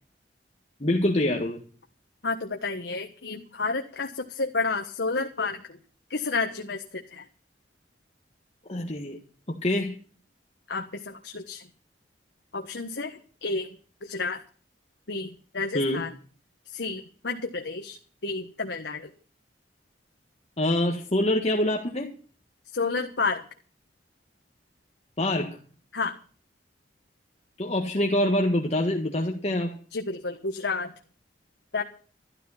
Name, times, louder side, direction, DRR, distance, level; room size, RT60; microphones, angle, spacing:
voice 1, 0.8-1.6 8.7-9.2 9.5-10.0 15.7-16.0 20.6-22.1 25.2-25.6 27.6-29.7, left 1 dB, 35° left, 1 dB, 1.7 m, -25 dB
voice 2, 2.2-5.8 6.1-7.2 10.7-11.6 12.5-13.7 14.0-14.4 15.1-16.1 16.7-18.0 18.2-19.1 22.7-23.4 25.9-26.2 29.9-30.9 31.7-31.8, left 3 dB, 75° left, 4 dB, 1.4 m, -30 dB
13.0 x 13.0 x 5.7 m, 0.42 s
head